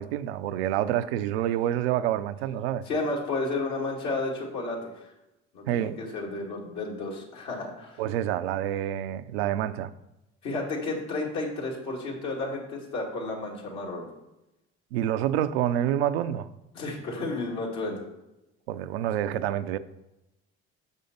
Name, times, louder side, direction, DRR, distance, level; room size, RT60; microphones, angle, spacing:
voice 1, 0.0-2.8 5.7-6.0 8.0-9.9 14.9-16.5 18.7-19.8, right 11 dB, 85° right, 0.5 m, -27 dB
voice 2, 2.9-5.1 5.5-8.0 10.4-14.1 16.7-18.1, left 2 dB, 70° left, 2.4 m, -32 dB
6.8 x 5.4 x 5.2 m
hypercardioid pair, 65°, 30 cm